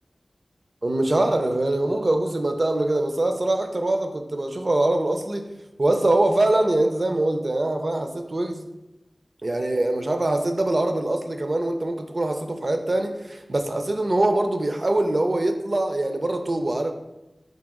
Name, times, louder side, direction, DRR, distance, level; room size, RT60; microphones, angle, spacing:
voice 1, 0.8-5.5 5.8-8.7 9.4-16.9, right 2 dB, 50° right, 5 dB, 0.4 m, -23 dB
4.0 x 2.8 x 3.5 m, 0.95 s
wide cardioid pair, 65°, 0 cm